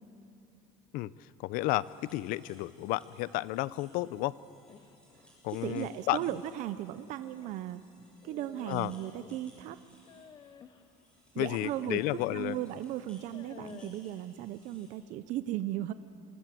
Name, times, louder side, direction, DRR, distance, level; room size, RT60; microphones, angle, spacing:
voice 1, 1.4-1.9 2.1-4.3 5.4-6.2 8.7-8.9 11.4-12.6, left 18 dB, 75° left, 19 dB, 0.6 m, -32 dB
sound 1, 1.5-14.9, equal, 5° left, 6.5 m, -63 dB
sound 2, 4.7-6.4 7.1-7.6 8.2-9.6 10.1-10.9 11.6-12.7 13.2-13.9, left 8 dB, 30° left, 1.0 m, -52 dB
voice 2, 5.6-7.8 8.2-9.8 11.3-12.0 12.3-15.9, right 13 dB, 55° right, 12 dB, 0.7 m, -36 dB
27.0 x 23.5 x 7.7 m, 2.6 s
cardioid pair, 170°, 15 cm